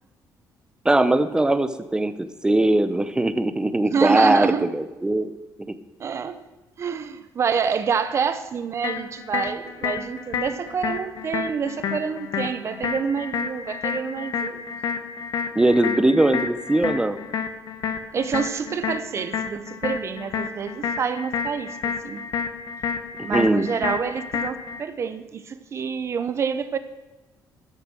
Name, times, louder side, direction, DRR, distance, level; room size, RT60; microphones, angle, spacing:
voice 1, 0.8-5.3 5.7-5.8 15.6-17.2 23.3-23.7, right 2 dB, 10° right, 0.7 m, -20 dB
voice 2, 3.8-4.7 6.0-6.4 6.8-14.8 18.1-22.3 23.2-26.8, right 6 dB, 40° right, 0.9 m, -27 dB
sound 1, 8.8-24.8, left 7 dB, 70° left, 1.1 m, -30 dB
13.0 x 6.7 x 6.1 m
cardioid pair, 125°, 7 cm